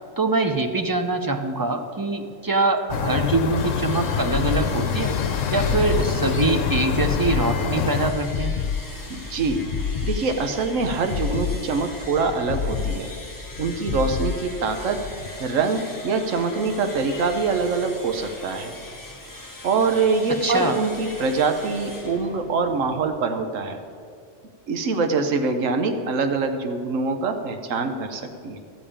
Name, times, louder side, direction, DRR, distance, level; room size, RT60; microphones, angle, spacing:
voice 1, 0.2-5.1 5.5-8.5 20.4-20.8, right 3 dB, 30° right, 6 dB, 0.4 m, -24 dB
sound 1, 2.9-8.1, left 7 dB, 85° left, 1.0 m, -25 dB
sound 2, 3.6-23.0, left 2 dB, 15° left, 1.2 m, -41 dB
sound 3, 4.3-15.3, left 7 dB, 60° left, 0.4 m, -30 dB
voice 2, 9.1-9.6 10.0-13.1 13.6-15.0 15.4-18.7 19.6-23.8 24.7-28.6, right 4 dB, 90° right, 7 dB, 1.3 m, -24 dB
13.0 x 5.2 x 8.6 m, 2.3 s
omnidirectional pair, 1.3 m